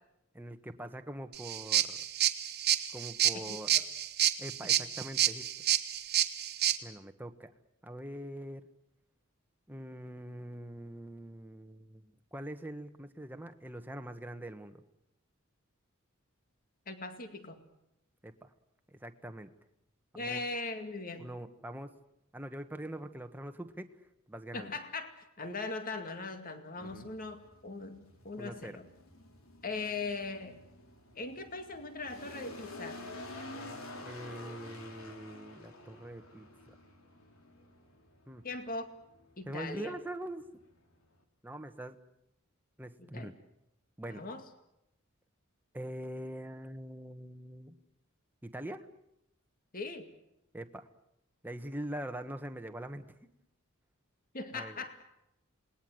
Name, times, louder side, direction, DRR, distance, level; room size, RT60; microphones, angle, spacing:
voice 1, 0.3-2.0 2.9-3.7 4.4-5.5 6.8-7.5 7.8-8.6 9.7-14.8 18.2-18.5 18.9-19.5 20.1-20.4 21.2-21.9 22.3-23.9 24.3-24.7 26.8-27.1 28.4-28.8 34.0-36.7 38.3-38.4 39.5-40.4 41.4-41.9 42.8-43.3 44.0-44.3 45.7-47.8 48.4-48.9 50.5-50.9 51.4-53.1 54.5-54.8, right 1 dB, 10° right, 7 dB, 1.4 m, -43 dB
sound 1, 1.3-6.8, right 11 dB, 50° right, 1.6 m, -29 dB
voice 2, 3.3-3.8 16.9-17.6 20.1-21.3 24.5-25.1 25.4-28.9 29.6-30.6 31.2-33.0 38.4-38.9 39.4-39.9 43.0-43.3 44.1-44.4 49.7-50.1 54.3-55.0, left 3 dB, 45° left, 7 dB, 2.2 m, -40 dB
sound 2, 26.8-41.2, left 2 dB, 90° left, 3.3 m, -50 dB
28.0 x 20.0 x 8.0 m, 0.83 s
head